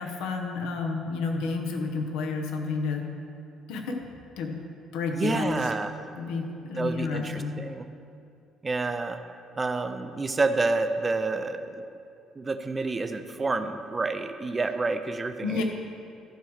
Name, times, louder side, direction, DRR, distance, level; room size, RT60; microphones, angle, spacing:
voice 1, 0.0-3.0 3.7-4.0 4.4-4.6 4.9-5.6 6.1-7.6 15.4-15.6, left 4 dB, 85° left, 3 dB, 1.0 m, -30 dB
voice 2, 5.1-6.0 6.8-7.9 8.6-9.2 9.6-11.8 12.4-15.6, right 3 dB, 20° right, 8 dB, 0.5 m, -29 dB
12.0 x 4.8 x 6.4 m, 2.6 s
cardioid pair, 125°, 0 cm